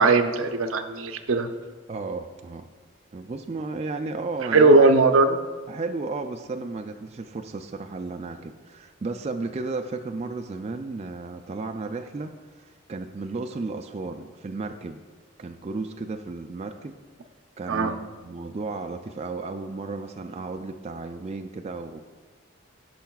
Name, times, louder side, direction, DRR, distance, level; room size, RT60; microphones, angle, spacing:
voice 1, 0.0-1.5 4.5-5.4 17.7-17.9, right 3 dB, 85° right, 8 dB, 0.6 m, -18 dB
voice 2, 1.9-2.7 3.1-4.9 5.7-15.0 15.4-17.0 17.6-22.0, right 3 dB, 30° right, 5 dB, 0.3 m, -34 dB
16.0 x 5.6 x 2.3 m, 1.4 s
head